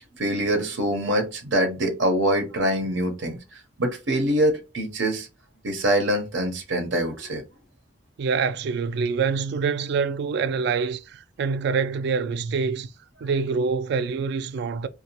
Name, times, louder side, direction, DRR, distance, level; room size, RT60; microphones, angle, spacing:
voice 1, 0.2-3.4 3.8-5.3 5.6-7.4, right 1 dB, 90° right, 0.7 m, -24 dB
voice 2, 8.2-12.9 13.2-14.9, right 5 dB, 65° right, 0.3 m, -25 dB
2.6 x 2.2 x 2.8 m
head